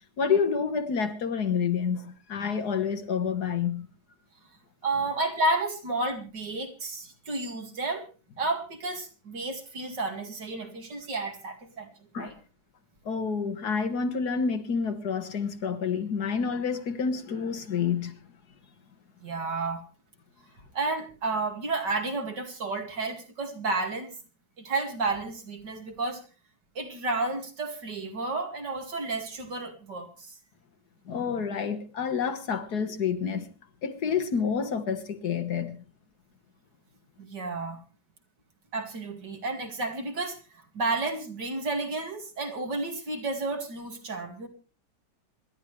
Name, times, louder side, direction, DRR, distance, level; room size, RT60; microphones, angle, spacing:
voice 1, 0.0-3.9 12.1-12.4 13.1-18.2 31.1-33.5 33.8-35.8, left 6 dB, 70° left, 2.0 m, -28 dB
voice 2, 4.8-8.0 8.4-11.9 12.2-12.3 19.2-19.8 20.7-24.2 24.6-26.2 26.7-30.3 37.2-37.8 38.7-44.5, right 2 dB, 85° right, 3.0 m, -31 dB
26.5 x 11.5 x 3.3 m
omnidirectional pair, 1.8 m